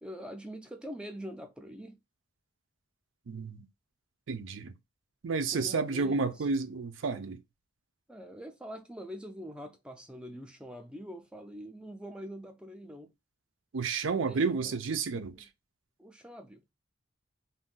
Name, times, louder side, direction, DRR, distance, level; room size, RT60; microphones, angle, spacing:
voice 1, 0.0-2.0 5.5-6.5 8.1-13.1 14.2-14.8 15.1-15.5 16.0-16.7, equal, 5° right, 0.4 m, -44 dB
voice 2, 3.3-3.7 4.3-4.7 5.2-7.4 13.7-15.4, right 4 dB, 80° right, 0.5 m, -31 dB
2.6 x 2.2 x 3.7 m
head